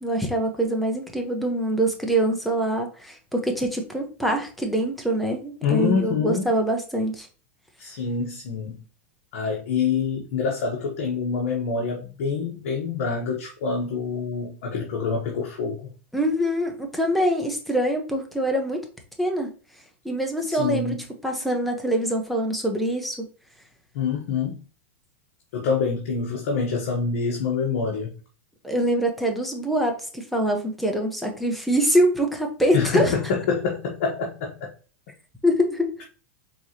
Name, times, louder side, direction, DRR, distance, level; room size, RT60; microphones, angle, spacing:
voice 1, 0.0-7.3 16.1-18.8 19.2-19.5 20.0-20.9 21.2-23.2 28.6-33.1 35.4-35.9, right 1 dB, ahead, 2 dB, 1.0 m, -24 dB
voice 2, 5.6-6.5 7.8-8.8 9.3-15.9 20.5-21.0 23.9-24.6 25.5-28.1 32.7-34.7, left 5 dB, 65° left, 0 dB, 1.0 m, -26 dB
4.5 x 3.3 x 2.8 m, 0.37 s
hypercardioid pair, 120°, 7 cm